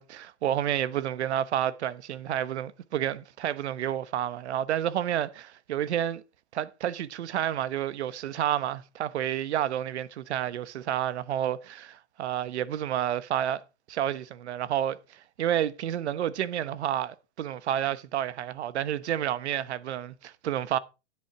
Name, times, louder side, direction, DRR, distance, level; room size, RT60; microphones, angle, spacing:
voice 1, 0.0-6.2 6.5-13.6 13.9-20.8, right 11 dB, 75° right, 1.2 m, -30 dB
10.0 x 8.8 x 4.6 m
hypercardioid pair, 160°, 34 cm